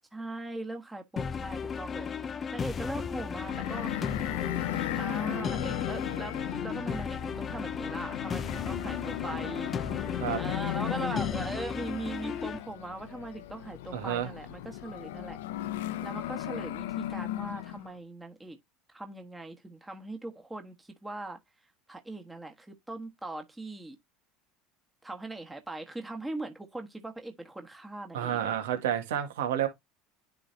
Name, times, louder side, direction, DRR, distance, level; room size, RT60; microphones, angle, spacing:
voice 1, 0.1-2.1 2.5-4.0 5.0-6.4 6.6-9.8 10.4-15.4 15.7-18.6 18.9-21.4 21.9-24.0 25.0-28.4, right 2 dB, 10° right, 1.3 m, -40 dB
sound 1, 1.2-12.6, left 6 dB, 30° left, 0.6 m, -35 dB
sound 2, 3.4-17.9, left 14 dB, 85° left, 0.7 m, -36 dB
voice 2, 13.9-14.3 28.1-29.7, right 10 dB, 85° right, 1.8 m, -30 dB
10.0 x 3.9 x 2.7 m
supercardioid pair, 100°, 0 cm